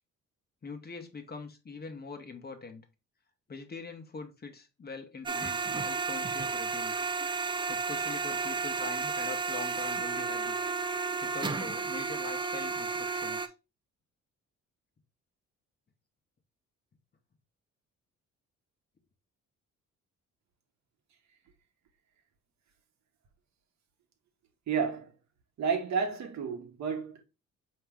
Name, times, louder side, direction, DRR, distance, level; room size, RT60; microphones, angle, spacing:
voice 1, 0.6-2.8 3.5-7.1 7.7-10.7 11.2-13.5, left 4 dB, 30° left, 1.0 m, -43 dB
sound 1, 5.3-13.5, right 5 dB, 15° right, 0.4 m, -32 dB
voice 2, 24.7-25.1 25.6-27.2, right 6 dB, 65° right, 1.0 m, -31 dB
4.5 x 2.9 x 3.4 m
cardioid pair, 90°, 30 cm